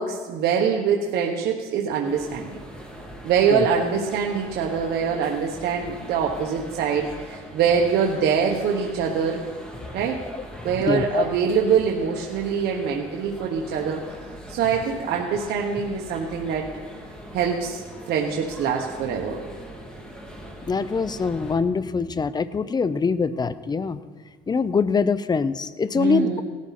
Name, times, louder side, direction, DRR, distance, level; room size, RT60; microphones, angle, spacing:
voice 1, 0.0-2.6 3.2-9.4 9.9-10.2 10.6-16.7 17.3-19.4 26.0-26.4, right 6 dB, 75° right, 0 dB, 1.4 m, -24 dB
sound 1, 2.0-21.5, equal, 5° left, 2.6 m, -41 dB
voice 2, 10.9-11.2 20.7-24.0 24.5-26.4, left 5 dB, 25° left, 14 dB, 0.7 m, -23 dB
18.0 x 12.5 x 4.3 m, 1.5 s
cardioid pair, 110°, 17 cm